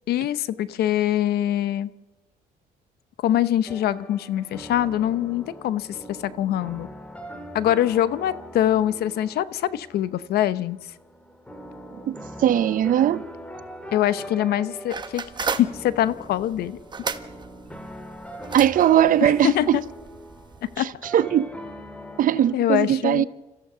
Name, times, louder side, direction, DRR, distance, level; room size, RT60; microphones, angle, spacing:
voice 1, 0.1-1.9 3.2-6.9 7.5-10.8 13.9-16.8 19.2-19.8 20.8-20.9 22.5-23.3, left 12 dB, 70° left, 0.9 m, -24 dB
sound 1, 3.7-22.5, equal, 5° left, 2.0 m, -41 dB
voice 2, 12.1-13.2 18.5-19.8 20.8-21.5 22.2-23.3, right 11 dB, 55° right, 0.8 m, -20 dB
sound 2, 14.9-20.8, right 5 dB, 25° right, 1.2 m, -35 dB
29.0 x 14.5 x 6.8 m
cardioid pair, 110°, 17 cm